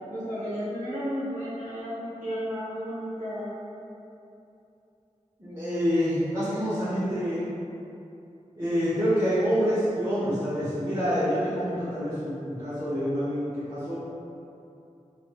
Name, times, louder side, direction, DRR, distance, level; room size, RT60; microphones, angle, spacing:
voice 1, 0.1-3.5, equal, 80° right, -11 dB, 1.0 m, -33 dB
voice 2, 5.4-7.4 8.6-14.0, equal, 25° right, -13 dB, 1.0 m, -27 dB
3.1 x 3.1 x 2.3 m, 2.8 s
wide cardioid pair, 50°, 13 cm